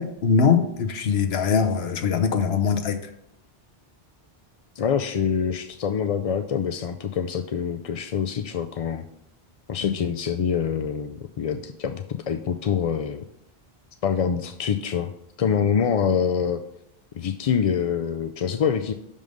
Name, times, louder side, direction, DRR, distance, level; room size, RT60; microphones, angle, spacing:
voice 1, 0.0-3.0 9.8-9.9, left 6 dB, 80° left, 8 dB, 1.1 m, -22 dB
voice 2, 4.8-9.0 9.7-13.2 14.0-15.1 15.4-16.6 17.1-18.9, left 7 dB, 55° left, 8 dB, 0.4 m, -25 dB
6.3 x 5.4 x 5.3 m, 0.78 s
omnidirectional pair, 1.0 m